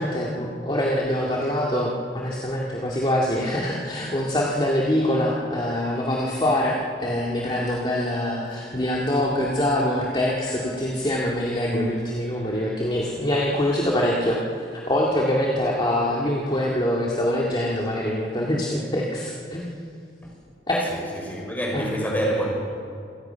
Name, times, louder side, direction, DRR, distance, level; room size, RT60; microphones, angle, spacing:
voice 1, 0.0-14.4 14.7-19.7 20.7-20.8 21.7-21.9, left 1 dB, 25° left, -3 dB, 2.2 m, -24 dB
voice 2, 20.7-22.6, right 1 dB, 10° left, -2 dB, 5.9 m, -27 dB
27.0 x 18.0 x 5.8 m, 2.4 s
head